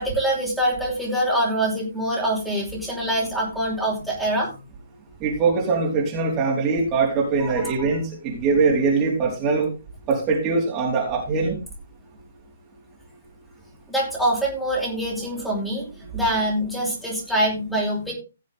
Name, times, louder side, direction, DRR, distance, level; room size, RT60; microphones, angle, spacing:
voice 1, 0.0-4.6 7.4-7.7 13.9-18.1, right 1 dB, ahead, -3 dB, 5.1 m, -25 dB
voice 2, 5.2-9.7 10.1-11.6, right 4 dB, 25° right, -2 dB, 4.3 m, -22 dB
17.0 x 7.3 x 3.8 m, 0.29 s
figure-of-eight pair, 130°, 0 cm